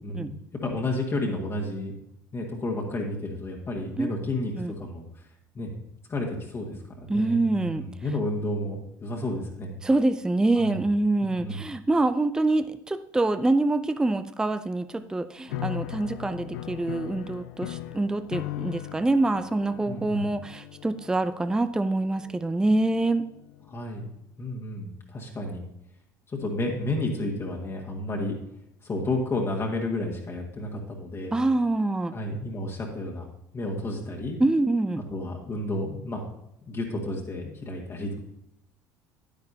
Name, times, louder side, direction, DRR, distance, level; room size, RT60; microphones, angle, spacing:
voice 1, 0.0-2.0 2.3-5.3 5.5-5.7 6.1-9.8 10.5-10.8 11.2-11.6 19.8-20.3 23.7-24.0 24.4-25.6 26.3-28.4 28.8-31.4 32.1-33.3 33.5-34.4 35.1-36.2 36.6-38.2, left 1 dB, 25° left, -1 dB, 1.7 m, -31 dB
voice 2, 7.1-7.8 9.8-23.2 31.3-32.1 34.4-35.0, right 2 dB, 5° right, 12 dB, 0.4 m, -25 dB
sound 1, 15.5-23.8, left 13 dB, 65° left, 0.5 m, -39 dB
10.5 x 10.5 x 2.8 m, 0.79 s
figure-of-eight pair, 65°, 10 cm